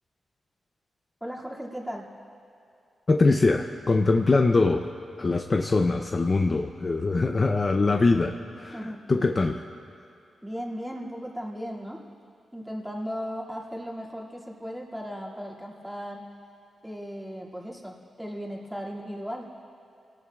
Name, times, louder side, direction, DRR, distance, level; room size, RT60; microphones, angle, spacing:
voice 1, 1.2-2.1 8.7-9.0 10.4-12.0 12.5-16.3 16.8-19.5, equal, ahead, -4 dB, 2.3 m, -36 dB
voice 2, 3.1-4.8 5.2-8.8 9.1-9.6, left 3 dB, 30° left, 4 dB, 0.5 m, -22 dB
30.0 x 19.0 x 2.4 m, 2.5 s
wide cardioid pair, 140°, 0 cm